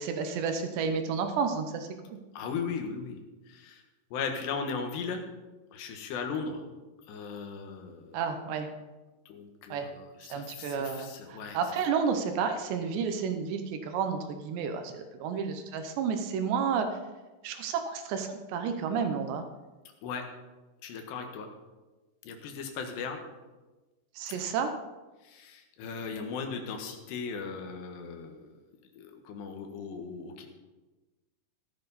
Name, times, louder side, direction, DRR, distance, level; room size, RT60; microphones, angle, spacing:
voice 1, 0.0-2.2 8.1-8.7 9.7-9.9 10.3-16.9 17.4-19.4 24.2-24.7, right 6 dB, 80° right, 7 dB, 3.2 m, -31 dB
voice 2, 2.3-3.2 3.5-3.8 4.1-5.2 5.7-6.6 7.1-8.2 9.3-11.9 20.0-20.2 20.8-21.5 22.2-23.2 25.2-28.5 29.0-30.5, left 5 dB, 75° left, 3 dB, 3.5 m, -37 dB
14.5 x 13.0 x 4.1 m, 1.2 s
omnidirectional pair, 5.0 m